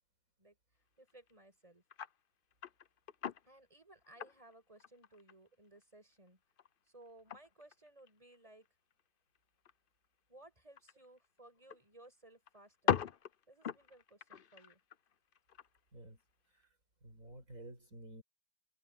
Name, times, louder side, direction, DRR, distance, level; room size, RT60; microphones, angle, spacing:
voice 1, 1.0-1.8 3.4-6.4 6.9-8.7 10.3-13.0 13.5-14.8, right 1 dB, 20° right, 7.5 m, -60 dB
sound 1, 1.1-1.3 1.9-2.2 2.5-3.6 4.0-5.5 5.8-5.9 6.3-8.4 8.7-9.0 9.4-9.5 9.7-9.8 10.8-11.8 12.0-12.1 12.5-15.8 16.2-16.3, left 8 dB, 75° left, 0.5 m, -39 dB
voice 2, 17.0-18.2, right 1 dB, 45° right, 6.2 m, -52 dB
omnidirectional pair, 1.9 m